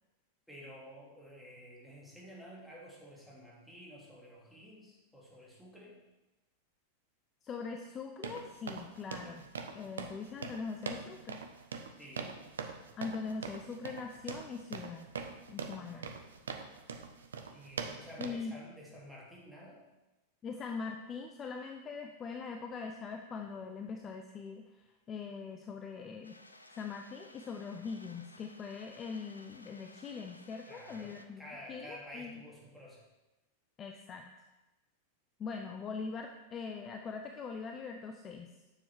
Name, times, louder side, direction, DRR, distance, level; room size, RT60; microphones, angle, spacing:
voice 1, 0.5-6.0 9.2-9.4 12.0-12.4 15.7-16.1 17.5-19.8 30.7-33.0, equal, ahead, -5 dB, 2.9 m, -51 dB
voice 2, 7.4-9.4 9.7-11.4 13.0-15.1 15.5-16.1 18.2-18.5 20.4-26.4 26.7-31.4 31.7-32.4 33.8-34.3 35.4-38.5, left 5 dB, 25° left, 5 dB, 0.7 m, -42 dB
sound 1, 8.2-18.3, right 5 dB, 70° right, 0.8 m, -43 dB
sound 2, 26.2-31.3, left 2 dB, 85° left, 0.6 m, -58 dB
9.6 x 7.1 x 4.6 m, 1.1 s
figure-of-eight pair, 90°, 0 cm